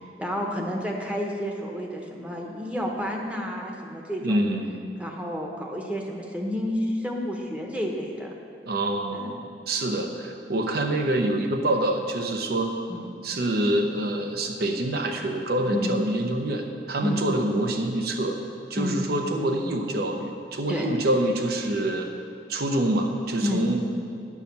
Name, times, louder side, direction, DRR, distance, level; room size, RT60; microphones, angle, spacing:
voice 1, 0.2-4.4 5.0-8.3 9.1-9.3 12.9-13.1 15.7-16.0 17.0-17.2 18.7-19.0 20.7-20.9 23.4-23.7, equal, 5° right, 0 dB, 0.9 m, -30 dB
voice 2, 4.2-4.8 8.6-12.7 13.2-18.4 18.7-22.1 22.5-23.8, right 1 dB, 60° right, 4 dB, 0.9 m, -26 dB
10.5 x 4.9 x 6.9 m, 2.5 s
head